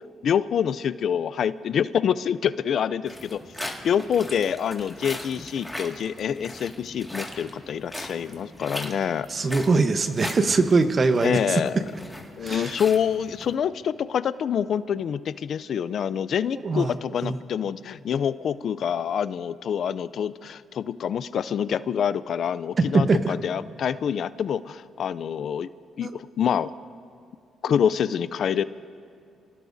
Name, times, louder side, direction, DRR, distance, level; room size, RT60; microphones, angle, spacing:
voice 1, 0.2-3.4 3.8-9.3 11.2-11.8 12.4-25.7 26.0-26.7 27.6-28.6, left 8 dB, 60° left, 15 dB, 0.4 m, -26 dB
sound 1, 3.0-13.5, left 1 dB, 5° left, 2.0 m, -39 dB
voice 2, 9.3-11.6 12.4-12.7 16.5-17.0 17.2-17.4 22.9-23.3 26.0-26.1, right 3 dB, 40° right, 9 dB, 1.0 m, -22 dB
28.5 x 18.5 x 2.7 m, 2.5 s
cardioid pair, 90°, 0 cm